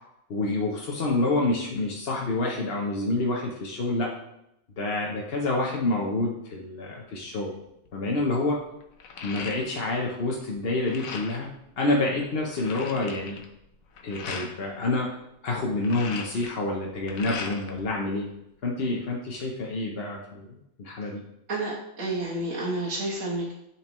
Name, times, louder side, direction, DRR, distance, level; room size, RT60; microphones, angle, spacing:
voice 1, 0.3-4.1 4.8-7.5 7.9-8.6 9.2-13.4 14.0-15.1 15.4-18.3 18.6-21.2, left 2 dB, 50° left, -1 dB, 1.0 m, -28 dB
sound 1, 7.9-8.0 8.3-10.1 10.3-11.5 12.0-12.1 12.3-14.5 15.6-17.8 18.2-19.0, left 5 dB, 85° left, 1.3 m, -39 dB
voice 2, 21.5-23.5, right 2 dB, 75° right, -6 dB, 1.6 m, -30 dB
10.5 x 4.5 x 3.0 m, 0.83 s
omnidirectional pair, 1.4 m